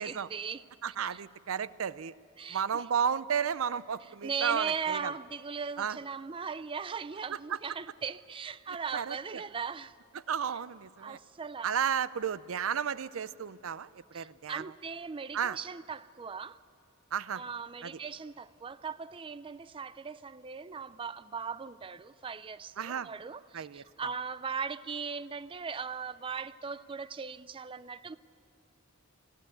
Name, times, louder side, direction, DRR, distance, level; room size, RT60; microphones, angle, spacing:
voice 1, 0.0-0.7 1.1-1.2 2.4-2.8 4.2-9.9 11.0-11.7 14.1-16.6 17.3-28.2, right 5 dB, 25° right, 0.4 m, -39 dB
voice 2, 0.8-2.1 2.5-5.1 5.8-6.0 7.3-7.6 8.9-9.4 10.3-11.2 11.6-14.6 15.3-15.6 17.1-17.4 17.8-17.9 22.8-23.1 23.5-24.1, right 7 dB, 80° right, 0.5 m, -33 dB
20.5 x 15.5 x 9.3 m
head